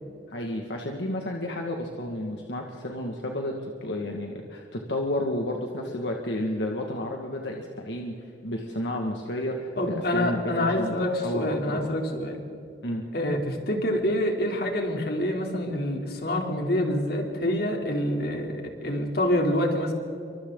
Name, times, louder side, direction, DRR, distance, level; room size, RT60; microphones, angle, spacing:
voice 1, 0.3-8.1 8.4-10.9 11.2-11.9 12.8-13.0, left 1 dB, 80° left, 1 dB, 2.0 m, -31 dB
voice 2, 9.8-12.4 13.1-19.9, left 1 dB, 60° left, 1 dB, 3.5 m, -26 dB
28.5 x 25.0 x 4.0 m, 2.7 s
head